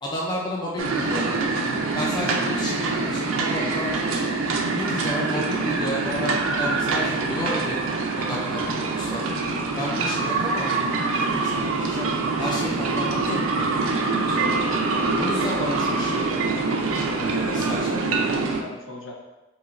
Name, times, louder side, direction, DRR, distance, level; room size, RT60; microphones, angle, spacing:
voice 1, 0.0-1.4 1.9-4.3 4.7-7.8 8.2-9.4 9.8-12.1 12.4-14.7 15.2-16.6 17.2-18.3, left 1 dB, 20° left, -2 dB, 0.3 m, -32 dB
sound 1, 0.8-18.6, right 3 dB, 80° right, 0.4 m, -25 dB
voice 2, 17.2-19.1, left 1 dB, 65° left, 0 dB, 0.6 m, -38 dB
4.1 x 2.8 x 2.4 m, 1.1 s
head